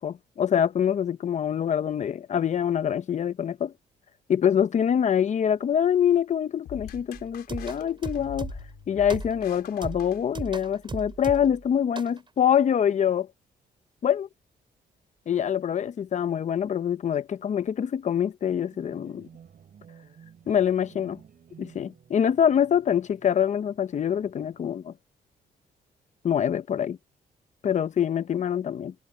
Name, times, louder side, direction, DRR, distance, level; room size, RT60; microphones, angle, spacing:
voice 1, 0.0-3.7 4.3-8.5 8.9-13.3 14.0-14.3 15.3-19.3 20.5-21.2 21.6-24.9 26.2-27.0 27.6-28.9, left 8 dB, 50° left, 0.8 m, -25 dB
sound 1, 6.7-10.8, left 12 dB, 90° left, 4.3 m, -44 dB
sound 2, 7.1-8.8 9.1-9.5 9.8-11.6 12.0-12.2, right 4 dB, 30° right, 5.2 m, -37 dB
sound 3, 18.5-24.8, right 8 dB, 60° right, 7.2 m, -54 dB
cardioid pair, 105°, 16 cm